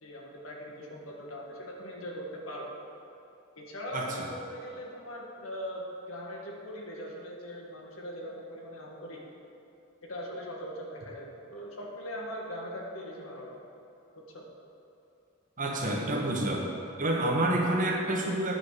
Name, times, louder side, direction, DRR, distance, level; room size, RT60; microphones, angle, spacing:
voice 1, 0.0-2.7 3.6-9.2 10.1-13.6 14.3-14.4 15.8-16.4, equal, 70° left, -2 dB, 1.7 m, -41 dB
voice 2, 15.6-16.6 17.0-18.6, right 1 dB, 40° right, 0 dB, 1.3 m, -28 dB
9.8 x 5.9 x 6.7 m, 2.8 s
head